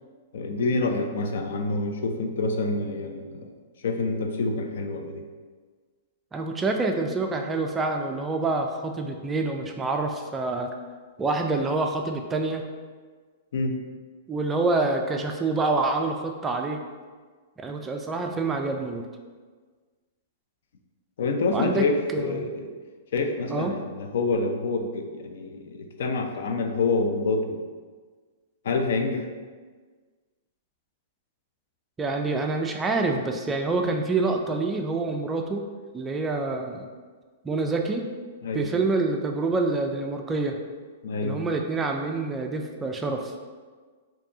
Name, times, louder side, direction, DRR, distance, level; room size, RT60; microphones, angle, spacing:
voice 1, 0.3-3.5 3.8-5.2 13.5-13.8 21.2-22.7 23.1-27.6 28.6-29.3 38.4-38.7 41.0-41.4, left 3 dB, 75° left, 5 dB, 0.5 m, -27 dB
voice 2, 6.3-10.7 11.2-12.6 14.3-16.8 17.6-19.1 21.5-21.8 22.1-22.5 23.5-23.7 32.0-35.6 35.9-36.9 37.4-38.0 38.5-40.6 41.2-43.3, right 3 dB, 15° right, 3 dB, 0.3 m, -27 dB
4.4 x 2.7 x 2.8 m, 1.5 s
hypercardioid pair, 145°, 0 cm